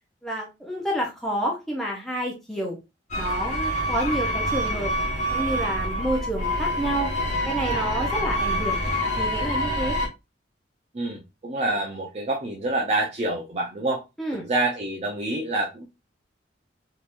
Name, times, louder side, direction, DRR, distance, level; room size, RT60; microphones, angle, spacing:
voice 1, 0.2-2.8 3.2-4.9 5.3-7.1 7.4-8.8 9.2-10.0 11.7-11.8 14.2-14.5, right 1 dB, ahead, -2 dB, 0.7 m, -29 dB
sound 1, 3.1-10.1, equal, 45° left, 1.3 m, -26 dB
voice 2, 10.9-14.0 14.3-15.9, right 2 dB, 35° right, 0 dB, 0.6 m, -27 dB
3.8 x 2.9 x 2.5 m, 0.24 s
head